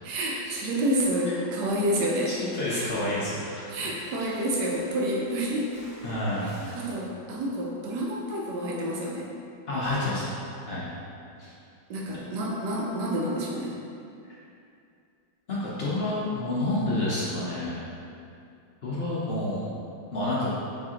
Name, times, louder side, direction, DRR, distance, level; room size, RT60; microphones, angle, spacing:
voice 1, 0.0-2.4 2.7-2.9 3.7-5.7 6.4-9.3 11.9-13.7, right 1 dB, 75° right, -3 dB, 1.1 m, -29 dB
sound 1, 0.9-6.9, right 1 dB, 25° left, 1.4 m, -47 dB
voice 2, 2.3-3.7 4.2-4.3 6.0-6.6 9.7-10.3 10.6-10.8 11.4-11.5 14.3-14.4 15.5-17.8 18.8-19.7 20.1-20.5, left 1 dB, 70° left, -9 dB, 0.5 m, -29 dB
4.8 x 3.3 x 2.8 m, 2.5 s
omnidirectional pair, 2.0 m